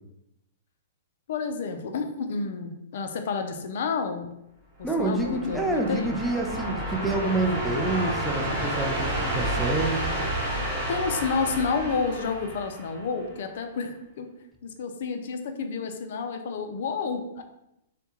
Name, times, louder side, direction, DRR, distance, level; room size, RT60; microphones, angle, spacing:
voice 1, 1.3-4.3 4.8-6.2 10.9-14.3 14.6-17.4, left 5 dB, 60° left, 6 dB, 0.3 m, -30 dB
voice 2, 4.8-10.0, right 2 dB, 5° right, 1 dB, 0.4 m, -27 dB
sound 1, 4.8-13.3, right 1 dB, 40° right, 1.0 m, -30 dB
2.2 x 2.1 x 3.0 m, 0.83 s
hypercardioid pair, 115°, 0 cm